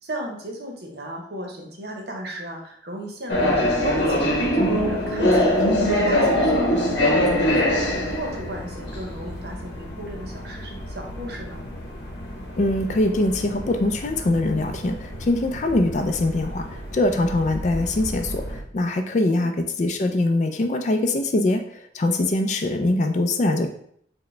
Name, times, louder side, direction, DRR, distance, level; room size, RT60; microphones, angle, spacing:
voice 1, 0.0-11.6 19.3-19.6, right 1 dB, 60° right, 0 dB, 0.8 m, -35 dB
sound 1, 3.3-18.6, left 1 dB, 65° left, 0.8 m, -25 dB
voice 2, 12.6-23.7, left 2 dB, 40° left, 6 dB, 0.3 m, -23 dB
4.7 x 2.1 x 3.2 m, 0.66 s
head